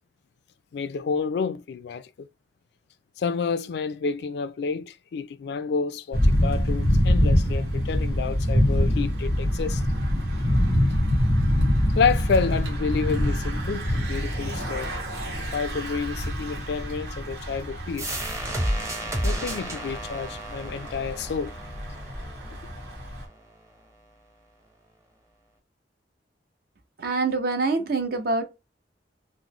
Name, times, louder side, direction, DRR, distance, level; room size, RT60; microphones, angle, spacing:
voice 1, 0.7-2.3 3.2-9.8 12.0-14.9 15.4-18.2 19.2-21.5, left 5 dB, 65° left, 0.3 m, -29 dB
Thunder / Bicycle, 6.1-23.2, equal, 85° right, 1.3 m, -25 dB
sound 1, 18.0-23.4, right 1 dB, 20° right, 0.7 m, -32 dB
voice 2, 27.0-28.4, right 3 dB, 60° right, 0.7 m, -25 dB
3.7 x 2.0 x 3.0 m
head